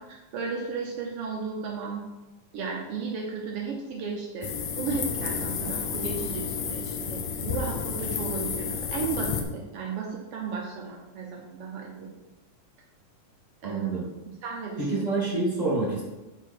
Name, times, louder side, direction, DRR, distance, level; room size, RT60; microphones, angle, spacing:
voice 1, 0.3-2.1 2.5-4.5 4.8-12.1 13.6-13.9 14.4-15.0, right 5 dB, 90° right, -1 dB, 1.3 m, -34 dB
sound 1, 4.4-9.4, left 6 dB, 75° left, 1.7 m, -31 dB
voice 2, 13.6-14.0 14.8-16.0, right 2 dB, 20° left, -6 dB, 1.1 m, -27 dB
9.6 x 4.5 x 4.6 m, 1.1 s
omnidirectional pair, 3.9 m